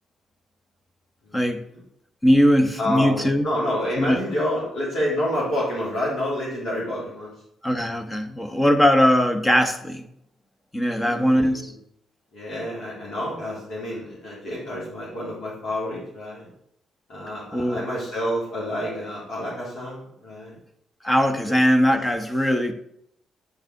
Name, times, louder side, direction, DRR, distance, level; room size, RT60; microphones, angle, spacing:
voice 1, 1.3-1.6 2.2-3.5 4.0-4.2 7.6-10.0 10.7-11.7 17.5-17.8 21.0-22.7, equal, 15° left, 7 dB, 0.9 m, -20 dB
voice 2, 2.8-7.3 10.9-11.7 12.3-16.4 17.1-20.5 21.5-21.6, equal, 65° left, -7 dB, 3.0 m, -28 dB
9.3 x 4.0 x 3.9 m, 0.71 s
cardioid pair, 90°, 0 cm